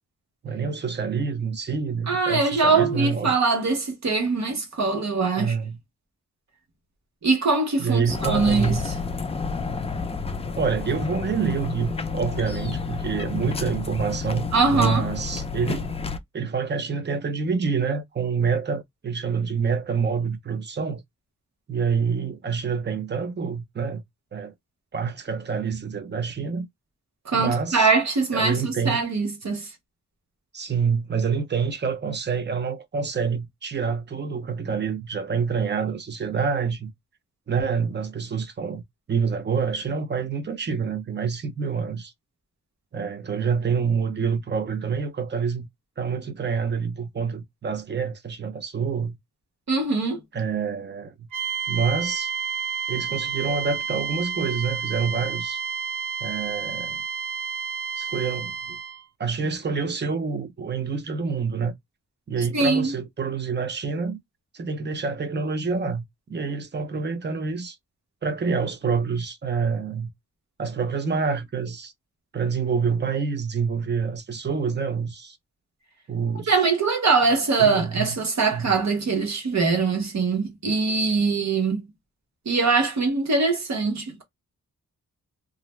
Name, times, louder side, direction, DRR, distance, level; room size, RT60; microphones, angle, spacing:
voice 1, 0.4-3.4 5.4-5.8 7.8-8.8 10.6-15.9 16.3-21.0 21.7-24.0 24.3-24.5 24.9-26.7 27.3-27.9 28.3-29.0 30.5-36.9 37.5-38.8 39.1-42.1 42.9-45.7 46.0-49.2 50.3-51.1 51.7-52.3 52.9-55.6 56.2-57.0 58.0-58.8 59.2-61.7 62.3-64.2 64.5-66.0 66.3-67.8 68.2-70.1 70.6-71.9 72.3-75.4 76.1-76.5 77.6-78.2 78.5-78.7, right 5 dB, 35° right, 0.5 m, -27 dB
voice 2, 2.1-5.6 7.2-8.9 14.5-15.1 27.2-29.7 49.7-50.2 62.5-62.9 76.5-81.9 82.5-84.2, right 4 dB, 60° right, 1.0 m, -22 dB
sound 1, 8.1-16.2, left 4 dB, 20° left, 0.3 m, -30 dB
sound 2, 51.3-59.0, right 6 dB, 90° right, 0.5 m, -30 dB
2.4 x 2.1 x 3.0 m
wide cardioid pair, 145°, 31 cm